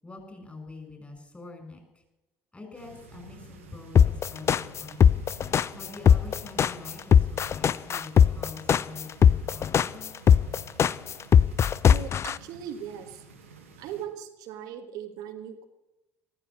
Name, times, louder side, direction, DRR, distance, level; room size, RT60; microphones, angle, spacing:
voice 1, 0.0-1.8 2.5-5.2 5.7-10.1, left 3 dB, 20° left, 5 dB, 6.4 m, -45 dB
sound 1, 2.7-14.1, right 3 dB, 90° right, 2.1 m, -51 dB
sound 2, 4.0-12.3, left 8 dB, 40° left, 0.5 m, -19 dB
voice 2, 11.8-13.2 13.8-15.7, right 9 dB, 65° right, 5 dB, 1.6 m, -39 dB
14.5 x 14.0 x 6.3 m, 0.95 s
hypercardioid pair, 55°, 7 cm